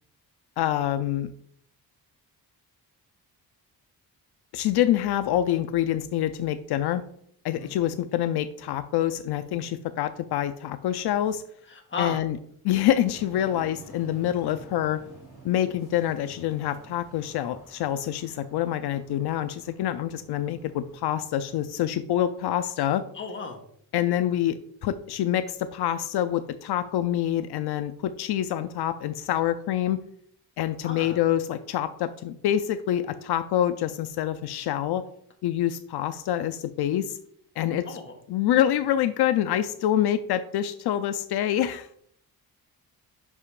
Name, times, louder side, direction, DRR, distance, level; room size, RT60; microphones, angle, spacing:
voice 1, 0.6-1.3 4.5-7.0 7.4-11.4 12.0-12.4 12.6-15.0 15.4-23.0 23.9-30.0 30.6-35.0 35.4-37.2 37.6-37.9 38.3-41.9, left 11 dB, 80° left, 11 dB, 0.5 m, -26 dB
voice 2, 11.7-12.2 23.1-23.6 30.8-31.2 37.8-38.1, left 4 dB, 30° left, 3 dB, 1.2 m, -34 dB
sound 1, 13.1-21.9, right 1 dB, 10° right, 2.8 m, -51 dB
5.8 x 5.5 x 4.8 m, 0.67 s
wide cardioid pair, 180°, 39 cm